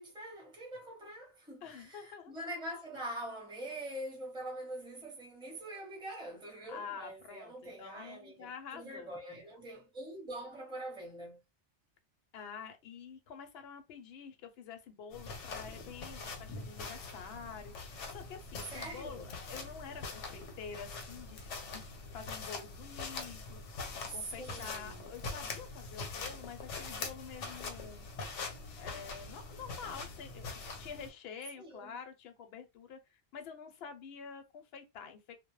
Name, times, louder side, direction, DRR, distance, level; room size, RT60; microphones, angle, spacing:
voice 1, 0.0-11.4 18.7-19.3 24.1-25.1 31.6-31.9, right 1 dB, 5° right, 0.9 m, -44 dB
voice 2, 1.6-2.3 6.7-9.1 12.3-17.7 18.1-21.8 22.1-28.0 28.7-35.3, left 6 dB, 65° left, 0.8 m, -48 dB
sound 1, 15.1-31.1, left 4 dB, 90° left, 1.0 m, -43 dB
2.2 x 2.0 x 3.0 m
omnidirectional pair, 1.2 m